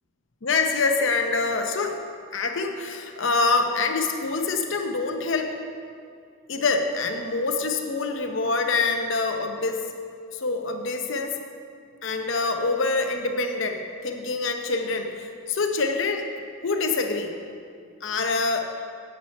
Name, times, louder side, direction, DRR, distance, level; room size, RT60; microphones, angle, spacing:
voice 1, 0.4-2.0 2.3-5.5 6.5-9.8 10.3-11.3 12.0-16.3 16.6-17.3 18.0-18.7, left 3 dB, 65° left, 5 dB, 0.8 m, -25 dB
8.1 x 7.2 x 5.3 m, 2.3 s
head